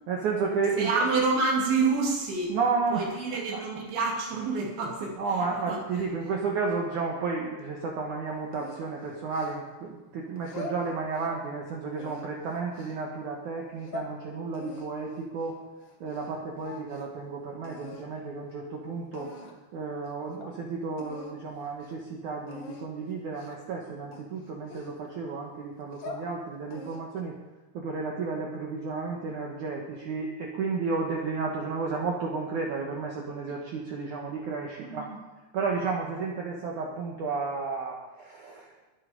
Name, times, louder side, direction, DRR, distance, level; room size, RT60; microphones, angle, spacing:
voice 1, 0.1-1.0 2.5-3.6 5.2-15.6 16.0-19.3 19.7-27.4 27.7-35.1 35.5-38.7, right 4 dB, 60° right, -1 dB, 2.1 m, -32 dB
voice 2, 0.8-2.5 2.9-5.2 5.7-5.8 34.8-35.2, right 4 dB, 75° right, -2 dB, 5.2 m, -27 dB
sound 1, 8.5-9.9 10.4-11.5 11.9-13.0 13.6-14.1 14.5-16.3 16.6-17.2 17.6-18.1 18.7-18.8 19.1-19.7 20.0-20.1 20.4-20.5 21.0-21.4 21.7-21.9 22.5-22.9 23.3-23.7 24.1-25.3 25.8-26.3 26.7-27.2, left 2 dB, 80° left, 1.3 m, -43 dB
22.0 x 7.9 x 5.3 m, 1.1 s
omnidirectional pair, 5.2 m